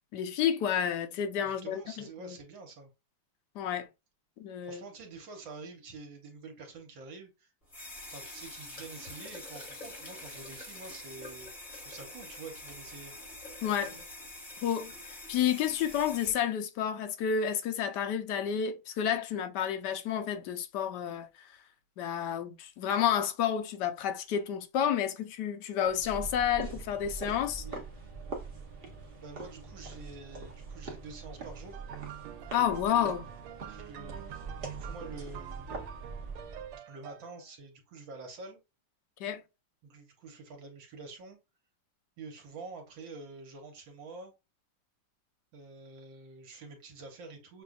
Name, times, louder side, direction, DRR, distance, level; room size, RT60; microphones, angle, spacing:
voice 1, 0.1-2.4 3.5-3.9 4.4-4.8 13.6-14.0 14.6-21.6 22.0-27.6 32.5-33.3 39.2-39.4, left 9 dB, 70° left, 1.0 m, -30 dB
voice 2, 1.4-2.9 4.6-7.5 8.1-13.1 27.6-27.9 29.2-31.8 33.7-35.9 36.9-38.6 39.8-41.4 42.2-44.3 45.5-47.6, right 3 dB, 65° right, 1.7 m, -47 dB
sound 1, 7.7-16.3, left 2 dB, 25° left, 1.5 m, -45 dB
sound 2, 25.8-36.8, right 3 dB, 45° right, 0.7 m, -43 dB
sound 3, 31.7-37.5, right 10 dB, 85° right, 1.5 m, -46 dB
6.8 x 2.5 x 2.4 m
omnidirectional pair, 2.4 m